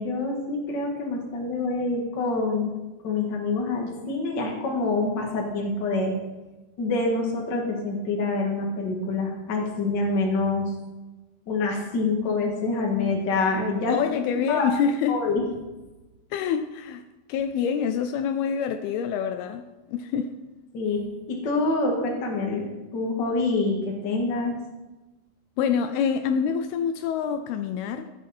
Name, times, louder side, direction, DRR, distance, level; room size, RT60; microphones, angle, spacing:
voice 1, 0.0-2.7 3.0-6.2 6.8-10.7 11.5-14.0 14.5-14.7 15.1-15.4 20.7-24.6, left 3 dB, 40° left, 1.7 m, -26 dB
voice 2, 13.8-15.2 16.3-20.4 25.6-28.1, left 7 dB, 80° left, 2.4 m, -26 dB
15.0 x 8.3 x 4.3 m
omnidirectional pair, 4.7 m